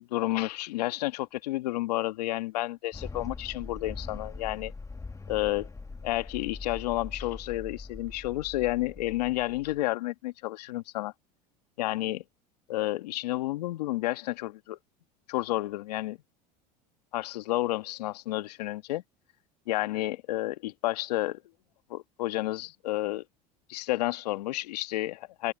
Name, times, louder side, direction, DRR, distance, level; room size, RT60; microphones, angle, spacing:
voice 1, 0.0-4.7 5.3-5.7 6.0-11.1 11.8-12.2 12.7-14.8 15.3-16.2 17.1-19.0 19.7-21.4 21.9-23.2 23.7-25.5, left 17 dB, 80° left, 1.6 m, -31 dB
sound 1, 2.9-9.8, left 3 dB, 15° left, 1.4 m, -42 dB
hypercardioid pair, 85°, 20 cm